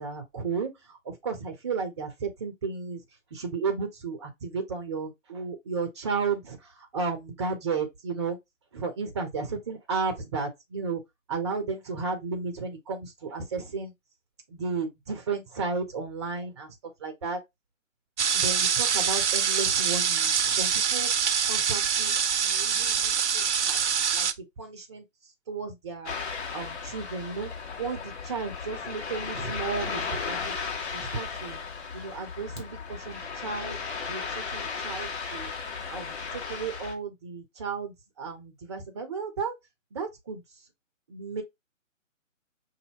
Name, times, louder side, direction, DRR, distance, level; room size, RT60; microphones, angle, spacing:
voice 1, 0.0-3.0 3.3-6.6 6.9-8.4 8.7-11.0 11.3-13.9 14.5-16.7 17.0-17.4 18.3-21.1 21.4-22.2 22.4-23.8 24.1-24.3 24.6-25.0 25.5-26.2 26.5-27.5 27.8-30.5 30.9-31.6 31.9-33.8 34.1-35.5 35.9-39.6 39.9-40.4 41.1-41.4, right 4 dB, 20° right, 0.7 m, -33 dB
sound 1, 18.2-24.3, right 7 dB, 60° right, 0.6 m, -25 dB
Ocean, 26.1-36.9, left 5 dB, 55° left, 1.8 m, -35 dB
5.3 x 2.7 x 2.8 m
figure-of-eight pair, 145°, 39 cm